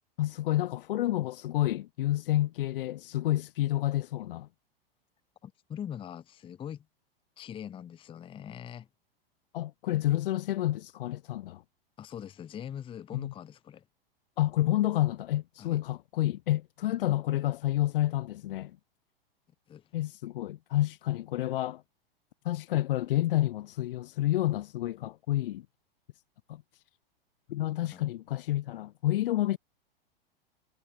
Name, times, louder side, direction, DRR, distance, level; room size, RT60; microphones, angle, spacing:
voice 1, 0.2-4.5 9.5-11.6 13.1-13.3 14.4-18.8 19.9-21.8 22.4-25.7 26.5-26.8 27.5-29.6, left 14 dB, 65° left, 0.5 m, -29 dB
voice 2, 5.4-6.9 7.4-8.9 12.0-13.9 15.6-15.8 19.7-19.9 27.9-28.1, left 9 dB, 15° left, 0.7 m, -42 dB
figure-of-eight pair, 100°, 30 cm